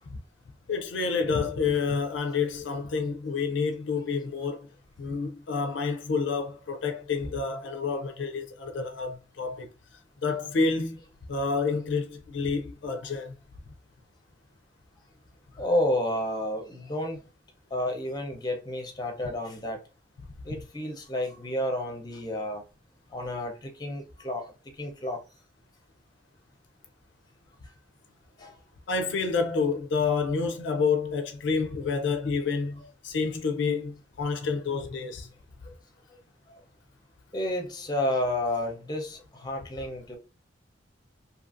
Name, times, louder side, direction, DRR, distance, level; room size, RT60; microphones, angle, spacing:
voice 1, 0.7-4.7 5.0-9.7 10.2-11.0 11.3-13.4 28.9-35.3, left 4 dB, 65° left, 0.4 m, -29 dB
voice 2, 15.5-17.2 17.7-19.8 20.4-22.6 23.1-25.2 28.4-28.6 35.6-35.7 36.1-36.2 36.5-36.6 37.3-40.2, left 1 dB, 20° left, 0.6 m, -31 dB
2.7 x 2.5 x 2.4 m
head